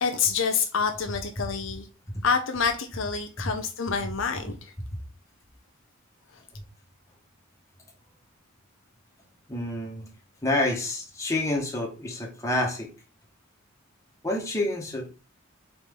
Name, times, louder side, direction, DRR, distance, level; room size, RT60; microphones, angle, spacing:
voice 1, 0.0-1.9 2.2-4.7, left 5 dB, 60° left, 0.7 m, -27 dB
voice 2, 9.5-10.1 10.4-12.9 14.2-15.1, left 1 dB, 15° left, 1.5 m, -28 dB
4.5 x 4.3 x 5.3 m
head